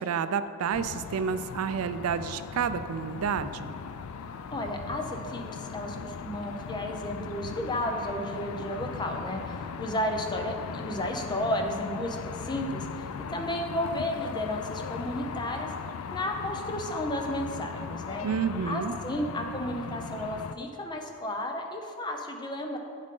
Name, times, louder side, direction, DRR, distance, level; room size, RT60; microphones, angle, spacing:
voice 1, 0.0-3.7 18.2-19.0, right 6 dB, 80° right, 12 dB, 0.4 m, -30 dB
sound 1, 0.7-20.5, left 6 dB, 75° left, 0.4 m, -38 dB
voice 2, 4.5-12.9 13.3-15.7 16.1-18.3 18.7-22.8, left 1 dB, 20° left, 3 dB, 0.6 m, -33 dB
8.9 x 7.4 x 3.8 m, 2.5 s
head